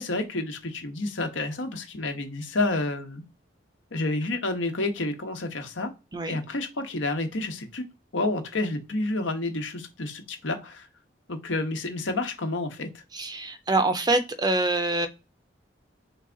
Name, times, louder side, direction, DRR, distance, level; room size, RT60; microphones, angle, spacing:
voice 1, 0.0-3.2 3.9-5.9 6.3-7.8 8.1-10.9 11.3-12.9, left 2 dB, 85° left, 6 dB, 1.1 m, -29 dB
voice 2, 13.1-15.1, right 2 dB, 20° right, 9 dB, 0.6 m, -25 dB
3.9 x 3.5 x 3.8 m, 0.28 s
head